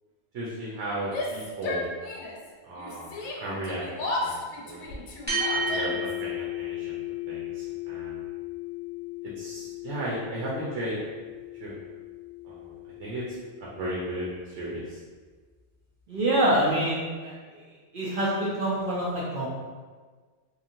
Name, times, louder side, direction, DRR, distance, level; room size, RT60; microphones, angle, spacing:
voice 1, 0.3-1.9 2.7-3.1 3.4-3.9 4.2-5.0 5.5-7.0 7.3-8.2 9.4-11.0 11.6-11.7 12.4-12.7 13.0-13.2 13.8-15.0, right 1 dB, 90° right, -6 dB, 0.9 m, -35 dB
Yell, 1.0-2.5 2.8-6.2, left 2 dB, 85° left, 0.9 m, -34 dB
sound 1, 5.3-13.9, left 3 dB, 10° right, 0.8 m, -35 dB
voice 2, 16.1-17.3 17.9-19.5, right 1 dB, 60° right, -6 dB, 0.6 m, -25 dB
3.0 x 2.4 x 2.5 m, 1.4 s
omnidirectional pair, 1.2 m